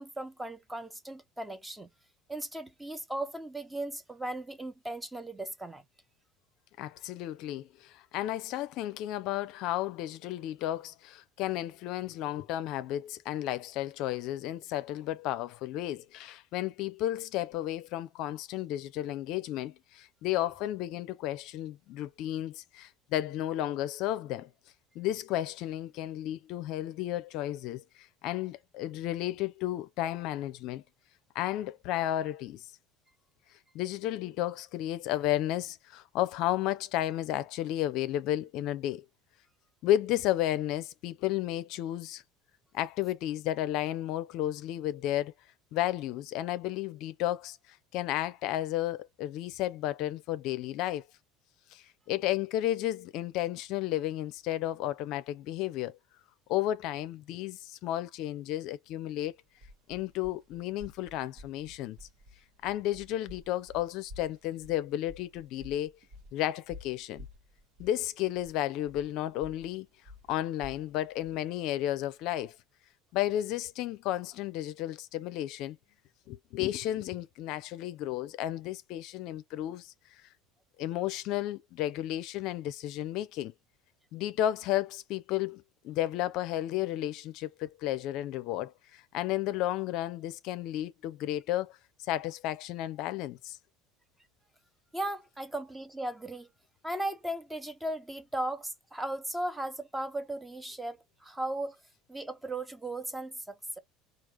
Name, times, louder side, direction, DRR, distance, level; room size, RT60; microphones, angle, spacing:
voice 1, 0.0-1.9 2.3-5.8 94.9-96.5 96.8-101.0 101.2-101.8 102.1-103.8, right 1 dB, 10° right, 0.9 m, -36 dB
voice 2, 6.8-24.5 25.0-30.8 31.3-32.6 33.7-39.0 39.8-42.2 42.7-45.3 45.7-51.0 51.7-56.0 56.5-59.3 59.9-62.1 62.6-65.9 66.3-67.3 67.8-69.9 70.3-72.6 73.1-75.8 76.3-79.9 80.8-83.5 84.1-93.6, left 13 dB, 60° left, 0.5 m, -33 dB
sound 1, 59.4-72.5, left 2 dB, 60° right, 1.4 m, -52 dB
4.7 x 2.4 x 2.9 m
hypercardioid pair, 70°, 0 cm